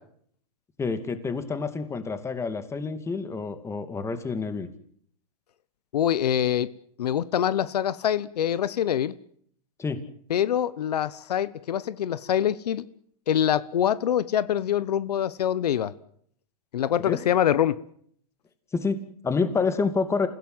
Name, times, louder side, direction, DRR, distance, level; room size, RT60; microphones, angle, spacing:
voice 1, 0.8-4.7 9.8-10.0 17.0-17.2 18.7-20.3, left 4 dB, 15° left, 10 dB, 2.3 m, -28 dB
voice 2, 5.9-6.7 7.0-9.1 10.3-12.8 13.3-15.9 16.7-17.7, left 10 dB, 85° left, 17 dB, 1.1 m, -24 dB
28.5 x 16.0 x 7.9 m, 0.64 s
hypercardioid pair, 130°, 20 cm